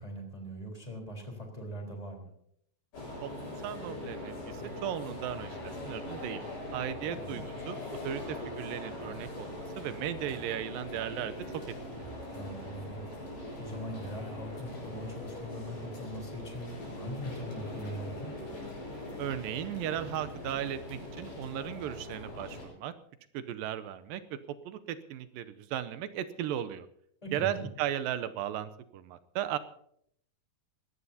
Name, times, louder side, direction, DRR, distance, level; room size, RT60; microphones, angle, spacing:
voice 1, 0.0-2.3 7.1-7.4 12.3-13.1 13.6-18.3 27.2-27.7, right 1 dB, 10° left, 1 dB, 3.7 m, -41 dB
sound 1, 2.9-22.7, left 1 dB, 70° left, 8.9 m, -41 dB
voice 2, 3.2-6.4 6.7-11.3 11.9-12.1 19.2-22.9 23.3-24.2 24.7-26.9 27.3-29.6, right 10 dB, 80° right, 11 dB, 2.5 m, -36 dB
22.5 x 17.5 x 2.8 m, 0.70 s
omnidirectional pair, 4.0 m